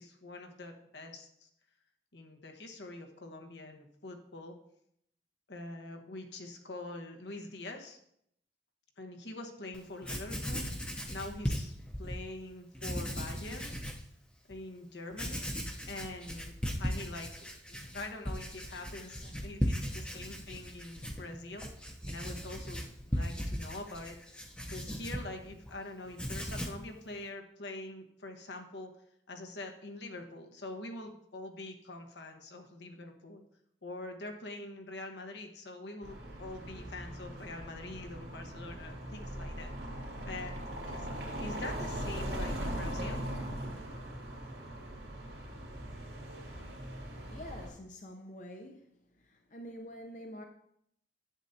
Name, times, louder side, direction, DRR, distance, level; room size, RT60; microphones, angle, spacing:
voice 1, 0.0-1.5 2.1-4.5 5.5-8.0 9.0-13.7 14.5-15.5 15.9-24.2 24.7-28.9 29.3-33.4 33.8-39.7 40.2-40.5 40.8-41.1 41.4-43.2, left 2 dB, 80° left, 1.2 m, -45 dB
Writing, 9.7-9.8 10.0-12.2 12.7-14.0 14.5-14.6 15.1-25.8 26.1-26.9, equal, 5° left, 0.7 m, -37 dB
sound 1, 36.0-47.7, equal, 70° right, 2.3 m, -40 dB
voice 2, 47.3-48.9 49.2-50.5, equal, 45° left, 0.6 m, -46 dB
10.5 x 7.9 x 2.7 m
head